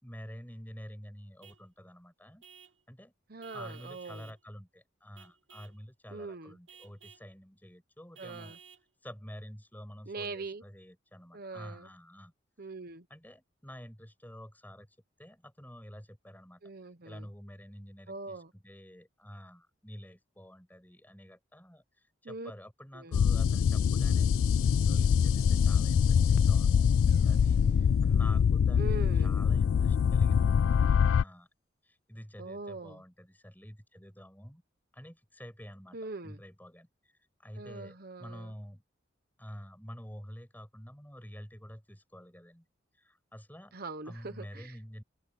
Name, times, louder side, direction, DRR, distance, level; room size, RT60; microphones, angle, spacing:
voice 1, 0.0-2.4 2.9-3.1 3.5-8.5 9.0-12.3 13.1-16.6 17.0-27.0 27.2-31.5 31.8-34.6 34.9-36.0 36.2-37.1 37.4-38.8 39.4-42.7 42.9-43.7 44.0-45.0, equal, 10° left, 6.7 m, -48 dB
Vehicle horn car horn honking / Truck, 1.4-1.7 2.4-2.8 3.4-4.4 5.2-5.8 6.7-7.3 8.2-8.9, right 7 dB, 70° right, 3.4 m, -55 dB
voice 2, 3.3-4.3 6.1-6.6 8.2-8.6 10.1-10.6 11.3-11.9 12.6-13.1 16.6-17.3 18.1-18.5 22.2-22.5 22.9-23.2 28.8-29.4 32.4-33.0 35.9-36.4 37.6-38.5 43.7-44.8, right 3 dB, 50° right, 1.1 m, -42 dB
sound 1, 23.1-31.2, left 7 dB, 75° left, 0.3 m, -24 dB
sound 2, 27.1-30.3, equal, 50° left, 3.0 m, -52 dB
head